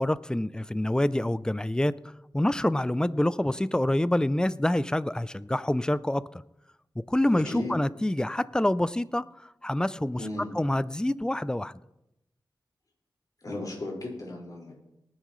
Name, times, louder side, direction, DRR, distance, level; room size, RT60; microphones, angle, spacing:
voice 1, 0.0-6.4 7.1-10.2 10.5-11.7, left 1 dB, 10° left, 17 dB, 0.4 m, -27 dB
voice 2, 7.3-7.7 10.2-10.5 13.4-14.7, left 2 dB, 45° left, -2 dB, 5.2 m, -35 dB
19.5 x 10.5 x 3.2 m, 0.86 s
wide cardioid pair, 100°, 8 cm